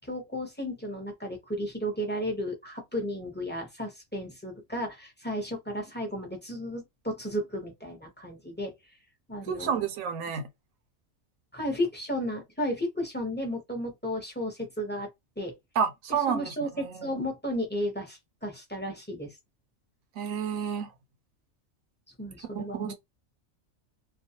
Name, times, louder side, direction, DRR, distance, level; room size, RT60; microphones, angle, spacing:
voice 1, 0.1-8.7 9.3-9.8 11.5-15.1 15.4-15.5 16.3-19.3 22.2-22.9, equal, 10° left, 0.6 m, -33 dB
voice 2, 9.5-10.5 15.8-17.2 20.2-20.9 22.5-22.9, right 7 dB, 80° right, 1.0 m, -30 dB
2.4 x 2.3 x 2.8 m
omnidirectional pair, 1.4 m